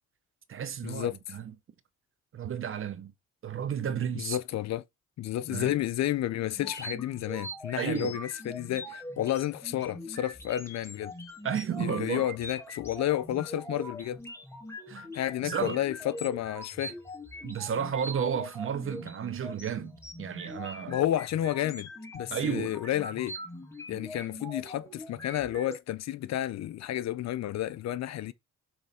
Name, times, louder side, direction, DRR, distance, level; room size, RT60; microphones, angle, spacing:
voice 1, 0.5-1.5 2.3-3.1 3.4-4.4 5.5-5.8 7.8-8.2 11.4-12.3 14.9-15.1 15.4-15.8 17.4-21.0 22.3-22.7, right 8 dB, 45° right, 0.8 m, -32 dB
voice 2, 4.1-4.8 5.2-11.1 11.8-14.2 15.1-17.0 20.9-23.4 23.9-28.3, left 12 dB, 60° left, 0.5 m, -31 dB
sound 1, 6.6-25.8, left 1 dB, 10° left, 1.5 m, -42 dB
7.2 x 3.2 x 4.2 m
cardioid pair, 90°, 30 cm